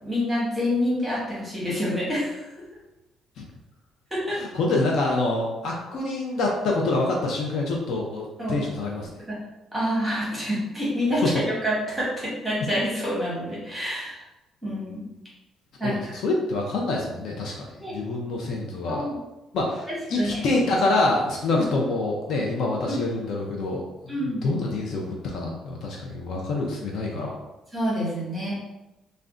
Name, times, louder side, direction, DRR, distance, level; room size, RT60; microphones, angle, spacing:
voice 1, 0.0-2.4 4.1-4.4 8.4-8.6 9.2-9.4 9.7-14.2 14.6-15.0 15.8-16.1 17.8-17.9 18.9-19.2 19.9-20.4 21.5-21.6 22.9-23.0 24.1-24.4 27.7-28.5, equal, 5° right, -8 dB, 1.0 m, -27 dB
voice 2, 4.3-9.1 15.8-19.1 19.5-27.4, left 2 dB, 55° left, -1 dB, 0.4 m, -26 dB
2.5 x 2.1 x 3.5 m, 0.98 s
cardioid pair, 180°, 0 cm